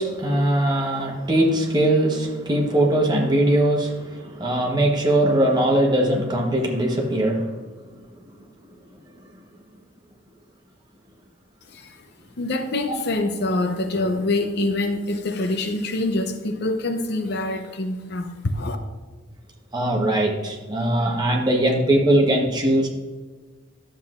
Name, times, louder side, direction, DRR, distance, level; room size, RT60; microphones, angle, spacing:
voice 1, 0.0-7.5 12.9-13.0 19.7-22.9, right 1 dB, 20° right, 0 dB, 1.0 m, -21 dB
voice 2, 12.4-18.8, left 2 dB, 50° left, 7 dB, 0.6 m, -25 dB
11.5 x 7.6 x 2.5 m, 1.4 s
head